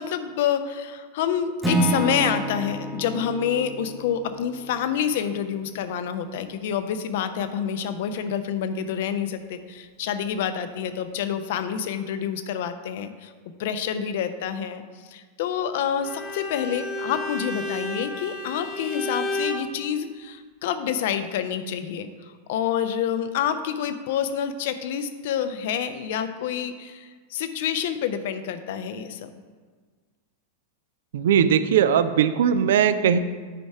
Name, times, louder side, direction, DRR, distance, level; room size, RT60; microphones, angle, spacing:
voice 1, 0.0-13.3 13.6-14.8 15.1-22.1 22.5-29.3, left 8 dB, 55° left, 10 dB, 0.6 m, -28 dB
Acoustic guitar / Strum, 1.6-5.7, right 2 dB, ahead, 1.1 m, -29 dB
Bowed string instrument, 16.0-19.7, left 2 dB, 35° left, 0.9 m, -31 dB
voice 2, 31.1-33.2, right 8 dB, 60° right, 12 dB, 0.4 m, -19 dB
9.3 x 5.2 x 4.7 m, 1.5 s
figure-of-eight pair, 90°, 0 cm